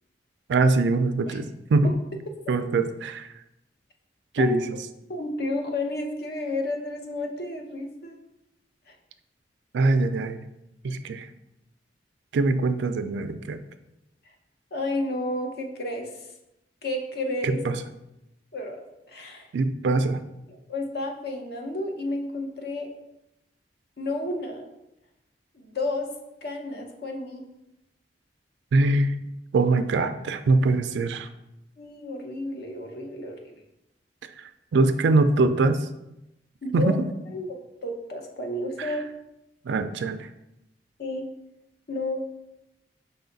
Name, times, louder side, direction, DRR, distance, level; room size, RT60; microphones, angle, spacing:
voice 1, 0.5-1.9 2.5-3.3 4.3-4.6 9.7-10.4 10.8-11.3 12.3-13.6 17.4-17.8 19.5-20.2 28.7-29.2 29.5-31.3 34.4-35.9 36.7-37.0 38.8-38.9 39.6-40.3, right 3 dB, 80° right, 10 dB, 0.3 m, -23 dB
voice 2, 5.1-8.2 8.9-9.0 14.2-14.3 14.7-16.3 16.8-17.6 18.5-19.5 20.5-22.9 24.0-24.7 25.5-26.1 26.4-27.4 31.8-33.5 36.6-37.0 37.3-39.0 41.0-41.3 41.9-42.2, left 2 dB, 65° left, 3 dB, 0.7 m, -31 dB
5.6 x 2.4 x 3.8 m, 0.91 s
head